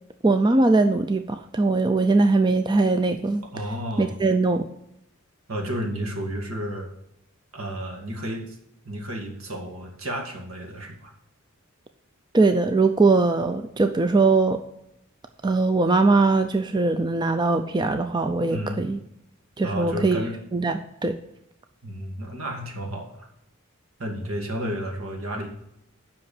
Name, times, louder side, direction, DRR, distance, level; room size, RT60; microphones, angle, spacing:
voice 1, 0.2-3.4 4.0-4.7 12.3-14.6 15.4-19.0 19.6-20.2 20.5-21.2, right 3 dB, 20° right, 7 dB, 0.4 m, -21 dB
voice 2, 3.5-4.2 5.5-6.9 7.5-8.6 8.8-11.1 18.5-18.8 19.6-20.4 21.8-23.3 24.0-25.5, equal, 75° right, 2 dB, 2.1 m, -32 dB
8.0 x 5.8 x 7.0 m, 0.82 s
head